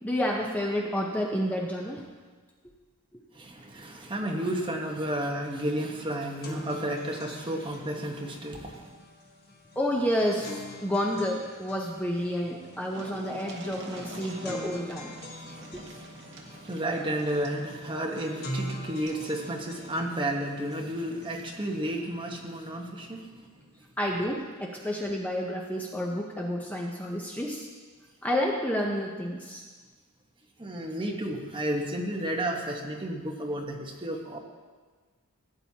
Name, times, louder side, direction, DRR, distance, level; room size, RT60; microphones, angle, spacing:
voice 1, 0.0-2.0 9.8-15.1 15.7-15.8 24.0-27.7 28.2-29.6, equal, 5° left, -1 dB, 0.7 m, -30 dB
voice 2, 3.3-8.9 15.4-23.3 30.6-34.4, right 1 dB, 20° right, 0 dB, 1.1 m, -32 dB
sound 1, 5.5-5.6 5.9-21.4, equal, 45° left, 1.4 m, -44 dB
sound 2, 12.2-12.3 12.5-19.3 20.6-20.7 21.1-21.2, right 2 dB, 55° right, 1.1 m, -47 dB
16.5 x 8.8 x 2.8 m, 1.5 s
head